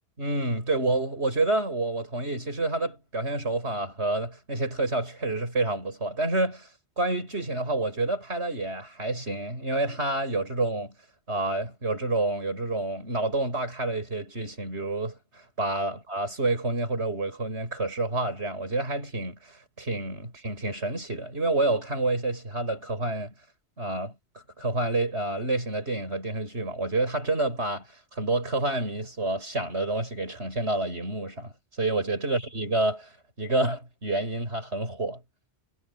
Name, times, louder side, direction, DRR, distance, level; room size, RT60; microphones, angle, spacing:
voice 1, 0.2-6.7 7.0-10.9 11.3-23.3 23.8-24.1 24.6-27.9 28.1-33.1 33.4-35.2, right 2 dB, 80° right, 6.7 m, -28 dB
omnidirectional pair, 1.1 m